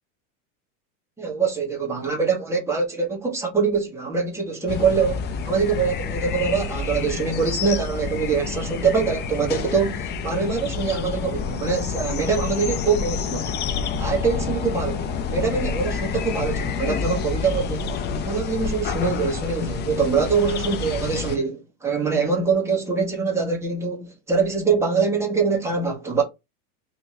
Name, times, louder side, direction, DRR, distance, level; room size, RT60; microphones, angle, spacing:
voice 1, 1.2-13.6 14.0-17.8 18.2-26.2, right 5 dB, 5° right, 1.4 m, -24 dB
sound 1, 4.7-21.4, left 6 dB, 25° left, 0.5 m, -28 dB
3.4 x 2.9 x 2.9 m
supercardioid pair, 120°, 41 cm